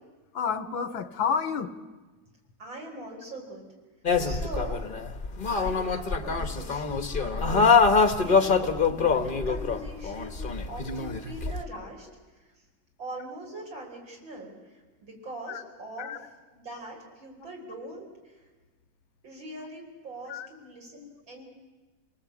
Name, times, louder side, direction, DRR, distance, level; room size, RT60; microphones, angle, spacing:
voice 1, 0.3-1.7 7.1-7.2 15.5-15.6 16.0-16.2 20.3-20.5, left 6 dB, 75° left, 11 dB, 1.9 m, -30 dB
voice 2, 2.6-3.7 4.2-4.8 5.5-12.1 12.3-12.5 13.0-14.5 15.0-16.2 16.5-18.4 19.2-21.4, right 1 dB, 70° right, 0 dB, 5.8 m, -42 dB
sound 1, 4.0-11.6, left 5 dB, 30° left, 1.2 m, -24 dB
28.5 x 19.0 x 8.6 m, 1.3 s
omnidirectional pair, 2.2 m